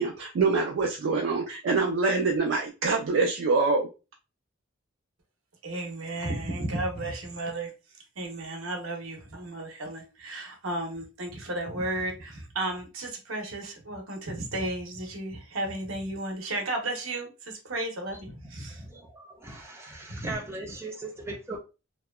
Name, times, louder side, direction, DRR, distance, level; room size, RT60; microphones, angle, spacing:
voice 1, 0.0-3.9, right 4 dB, 70° right, 0.4 m, -25 dB
voice 2, 5.6-7.7 8.2-18.8 20.1-20.3, right 1 dB, 90° right, 0.8 m, -34 dB
voice 3, 18.8-21.6, right 2 dB, 15° right, 0.5 m, -39 dB
2.8 x 2.1 x 2.2 m
head